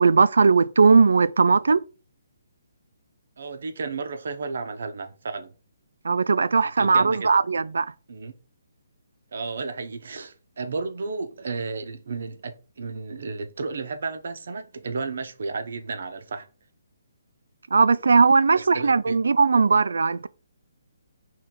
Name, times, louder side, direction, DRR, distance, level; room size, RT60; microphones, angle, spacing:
voice 1, 0.0-1.8 6.0-7.9 17.7-20.3, right 4 dB, 85° right, 0.3 m, -18 dB
voice 2, 3.4-5.5 6.8-7.3 8.1-8.3 9.3-16.5 18.7-19.2, right 4 dB, 50° right, 0.7 m, -33 dB
4.5 x 3.2 x 3.7 m
hypercardioid pair, 180°, 0 cm